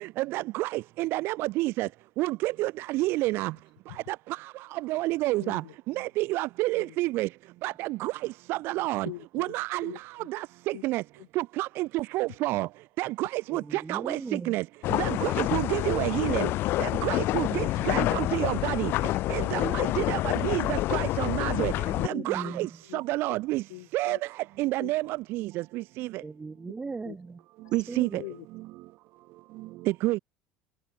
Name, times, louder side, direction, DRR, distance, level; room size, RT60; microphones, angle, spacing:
voice 1, 0.2-1.9 2.2-3.5 4.1-4.2 4.7-5.6 6.0-7.3 7.6-8.1 8.5-9.1 9.3-9.9 10.3-11.0 11.4-12.7 13.0-14.6 14.9-16.5 16.8-18.9 19.3-21.7 22.0-23.6 23.9-24.2 24.6-26.1 27.7-28.2 30.0-30.2, right 19 dB, 65° right, 0.4 m, -29 dB
voice 2, 5.4-6.1 6.7-7.2 9.0-9.5 9.8-10.3 10.7-10.8 11.2-11.3 17.9-18.3 18.7-18.8 20.1-20.3 22.1-22.5 22.9-23.4 23.7-24.2 24.6-25.1 27.0-27.1 27.6-27.8 28.2-28.4, left 22 dB, 90° left, 1.5 m, -45 dB
voice 3, 13.5-14.6 17.3-18.5 21.4-22.8 26.2-27.4 27.9-28.4, right 4 dB, 20° right, 1.9 m, -39 dB
sound 1, 14.8-22.1, left 16 dB, 60° left, 0.5 m, -28 dB
supercardioid pair, 100°, 4 cm